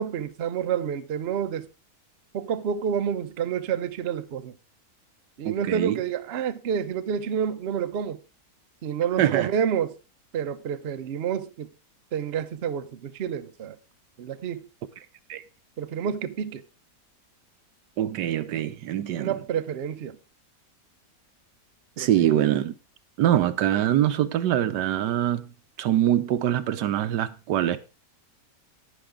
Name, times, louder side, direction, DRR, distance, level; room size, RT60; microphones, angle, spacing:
voice 1, 0.0-1.7 2.3-4.5 5.4-8.2 8.8-9.9 10.3-11.7 12.1-13.8 14.2-14.6 15.8-16.6 19.2-20.2 22.0-22.4, right 8 dB, 55° right, 0.7 m, -29 dB
voice 2, 5.4-6.0 9.2-9.5 15.3-15.4 18.0-19.4 22.0-22.7 23.2-25.5 25.8-27.8, right 11 dB, 90° right, 1.4 m, -24 dB
11.0 x 9.4 x 3.7 m
omnidirectional pair, 1.8 m